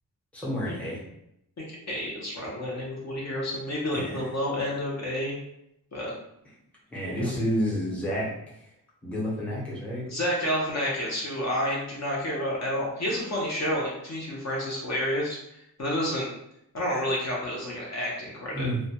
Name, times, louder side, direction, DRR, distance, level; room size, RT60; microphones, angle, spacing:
voice 1, 0.3-1.0 3.9-4.3 6.9-8.3 8.6-8.7 9.0-10.0 18.5-18.8, equal, 5° left, -6 dB, 0.7 m, -30 dB
voice 2, 1.6-5.4 5.9-6.1 7.1-7.3 10.1-15.4 15.8-16.3 16.7-18.7, equal, 45° left, -4 dB, 0.6 m, -30 dB
2.2 x 2.1 x 2.7 m, 0.78 s
wide cardioid pair, 155°, 37 cm